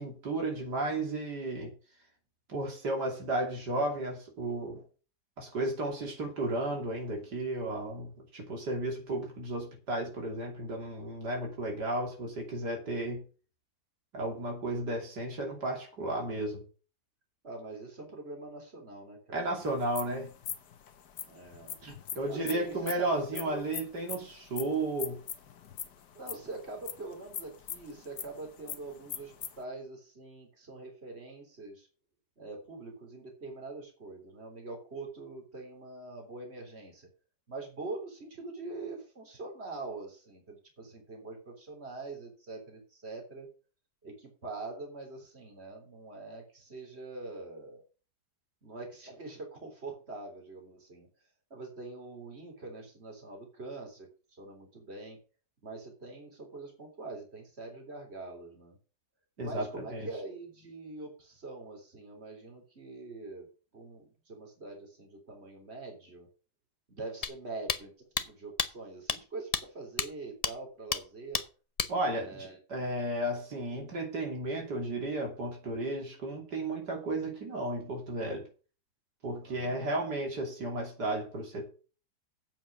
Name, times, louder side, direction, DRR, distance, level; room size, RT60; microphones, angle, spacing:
voice 1, 0.0-1.7 2.5-4.8 5.4-13.2 14.1-16.6 19.3-20.3 21.8-25.2 59.4-60.1 71.9-78.4 79.2-81.7, right 1 dB, 80° right, 1 dB, 3.5 m, -33 dB
voice 2, 17.4-19.6 21.2-21.8 22.3-23.6 26.2-31.9 32.4-37.1 37.5-43.5 44.0-47.8 48.6-51.1 51.5-55.2 55.6-58.8 59.4-63.5 63.7-66.3 66.9-71.4 72.2-72.6 79.4-80.0, right 3 dB, 40° right, 2 dB, 3.7 m, -44 dB
sound 1, 19.6-29.6, left 9 dB, 80° left, 1.7 m, -42 dB
sound 2, 67.2-67.3 67.7-67.8 68.2-68.3 68.6-68.7 69.1-69.2 69.5-69.6 70.0-70.1 70.4-70.5 70.9-71.0 71.3-71.4 71.8-71.9, left 5 dB, 40° left, 0.5 m, -30 dB
8.6 x 7.3 x 7.1 m, 0.36 s
omnidirectional pair, 1.8 m